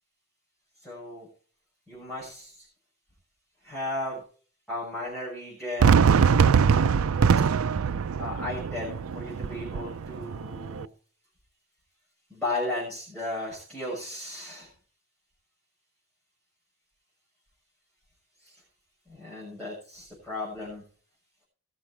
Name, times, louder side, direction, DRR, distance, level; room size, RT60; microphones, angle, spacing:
voice 1, 0.8-1.3 1.9-2.7 3.6-4.2 4.7-6.3 8.2-10.9 12.3-14.7 18.4-18.6 19.1-20.8, left 2 dB, 5° left, -7 dB, 6.6 m, -35 dB
Fireworks, 5.8-10.9, right 6 dB, 85° right, 0.5 m, -22 dB
20.0 x 6.9 x 4.6 m, 0.42 s
head